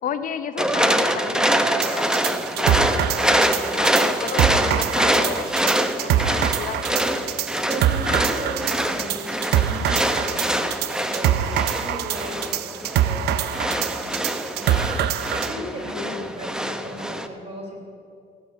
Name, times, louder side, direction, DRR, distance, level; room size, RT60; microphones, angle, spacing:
voice 1, 0.0-6.8 15.6-15.7 16.0-16.3, left 8 dB, 55° left, 10 dB, 0.7 m, -33 dB
sound 1, 0.6-17.3, right 1 dB, 5° right, 0.8 m, -24 dB
sound 2, 1.8-15.5, right 10 dB, 75° right, 0.6 m, -25 dB
voice 2, 7.6-14.8 15.4-17.8, right 1 dB, 35° right, 1 dB, 4.0 m, -37 dB
16.5 x 7.5 x 8.5 m, 2.4 s
cardioid pair, 110°, 17 cm